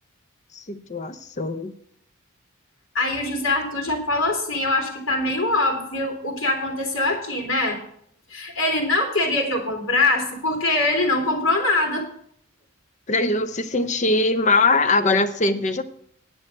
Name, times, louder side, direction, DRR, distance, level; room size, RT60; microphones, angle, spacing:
voice 1, 0.5-1.7 13.1-15.8, left 3 dB, 35° left, 10 dB, 0.7 m, -21 dB
voice 2, 2.9-7.8 8.3-12.1, left 2 dB, 70° left, 2 dB, 2.7 m, -23 dB
9.7 x 6.3 x 8.5 m, 0.65 s
head